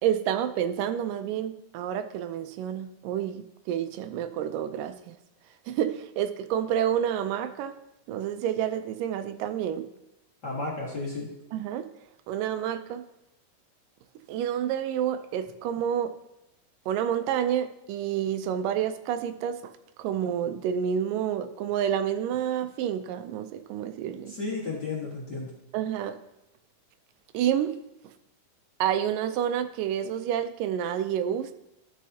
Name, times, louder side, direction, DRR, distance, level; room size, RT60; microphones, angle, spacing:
voice 1, 0.0-5.2 5.7-7.8 8.1-9.9 11.5-11.9 12.3-13.0 14.3-16.1 16.9-19.7 20.0-24.3 25.7-26.2 27.3-27.8 28.8-31.5, right 9 dB, 85° right, 10 dB, 2.2 m, -29 dB
voice 2, 10.4-11.3 24.3-25.5, left 3 dB, 40° left, -5 dB, 1.7 m, -33 dB
13.5 x 6.5 x 2.8 m, 0.91 s
omnidirectional pair, 3.8 m